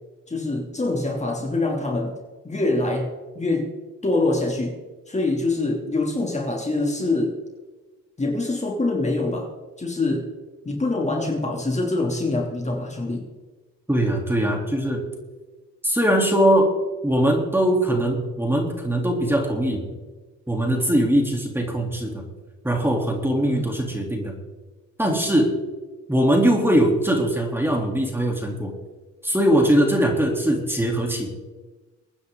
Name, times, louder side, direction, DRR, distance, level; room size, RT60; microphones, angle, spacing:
voice 1, 0.3-2.1 2.4-3.1 3.3-3.7 4.0-4.8 5.1-7.4 8.2-9.5 9.8-10.2 10.6-13.2 23.4-23.7, left 2 dB, 25° left, 0 dB, 3.0 m, -24 dB
voice 2, 13.9-15.0 15.8-16.7 17.0-19.8 20.5-22.2 22.6-24.4 25.0-25.5 26.1-28.7 29.2-31.3, right 1 dB, 5° right, 1 dB, 3.5 m, -21 dB
24.0 x 9.7 x 4.0 m, 1.2 s
cardioid pair, 90°, 30 cm